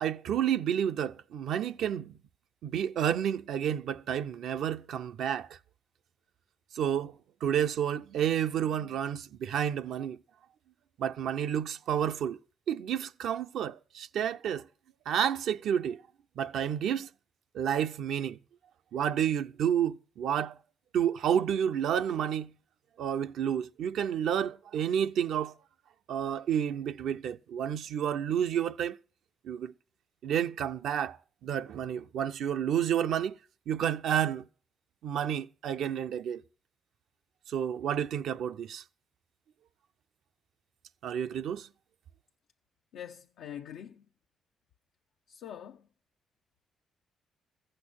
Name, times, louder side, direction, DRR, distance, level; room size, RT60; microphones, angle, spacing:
voice 1, 0.0-2.2 2.6-5.6 6.7-7.2 7.4-10.2 11.0-12.4 12.7-14.7 15.1-16.0 16.4-17.1 17.5-18.4 18.9-20.6 20.9-22.5 23.0-25.5 26.1-29.0 29.4-29.7 30.2-31.2 31.4-33.4 33.7-34.4 35.0-36.4 37.5-38.8 41.0-41.7, right 9 dB, 80° right, 0.6 m, -30 dB
voice 2, 42.9-44.1 45.3-45.9, left 9 dB, 85° left, 0.6 m, -44 dB
14.5 x 6.6 x 8.6 m
cardioid pair, 80°, 0 cm